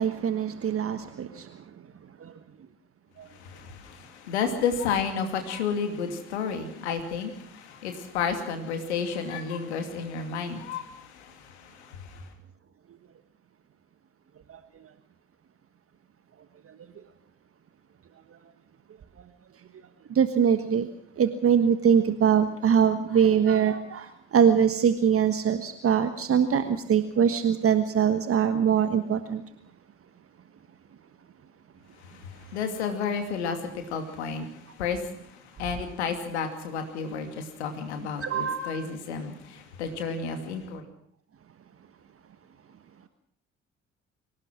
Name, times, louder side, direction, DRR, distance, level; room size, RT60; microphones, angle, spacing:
voice 1, 0.0-1.5 2.2-2.3 20.1-20.9 21.2-29.4 38.2-38.9, right 7 dB, 40° right, 9 dB, 1.4 m, -23 dB
voice 2, 3.3-12.2 32.1-35.0 35.3-40.9, left 6 dB, 80° left, 6 dB, 2.6 m, -32 dB
25.0 x 17.5 x 6.2 m, 0.69 s
figure-of-eight pair, 45°, 33 cm